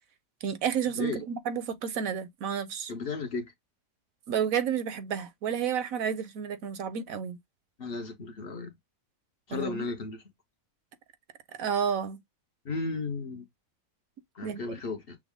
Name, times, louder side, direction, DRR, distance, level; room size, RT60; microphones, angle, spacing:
voice 1, 0.4-2.9 4.3-7.4 9.5-9.8 11.6-12.2 14.4-14.6, right 7 dB, 75° right, 1.2 m, -31 dB
voice 2, 2.9-3.5 7.8-8.7 9.5-10.2 12.6-13.4 14.3-15.2, left 4 dB, 45° left, 1.0 m, -34 dB
6.1 x 2.1 x 3.5 m
omnidirectional pair, 1.5 m